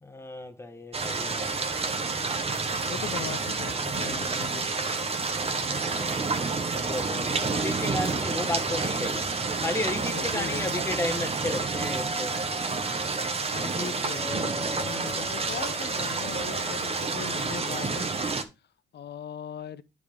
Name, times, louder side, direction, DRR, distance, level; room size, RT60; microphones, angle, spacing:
voice 1, 0.0-1.5 5.7-9.3 9.6-12.4, left 2 dB, 15° left, 1.1 m, -34 dB
sound 1, 0.9-18.4, right 4 dB, 30° right, 1.0 m, -29 dB
voice 2, 2.8-4.6 10.1-10.7 13.5-18.1 18.9-19.8, left 8 dB, 55° left, 0.8 m, -39 dB
Doorbell, 11.6-16.5, left 1 dB, 15° right, 1.5 m, -42 dB
9.6 x 3.7 x 5.0 m
cardioid pair, 90°, 20 cm